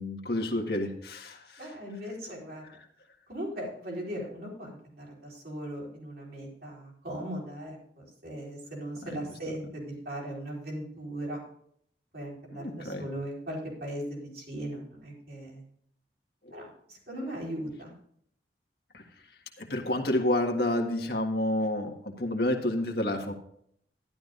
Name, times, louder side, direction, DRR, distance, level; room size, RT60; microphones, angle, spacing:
voice 1, 0.0-1.7 2.6-2.8 9.0-9.2 12.5-13.0 18.9-19.0 19.6-23.3, left 1 dB, 60° left, 3 dB, 1.7 m, -29 dB
voice 2, 1.6-2.6 3.3-11.4 12.1-15.6 16.5-17.9, right 1 dB, 55° right, -2 dB, 4.3 m, -38 dB
12.5 x 11.5 x 2.6 m, 0.66 s
head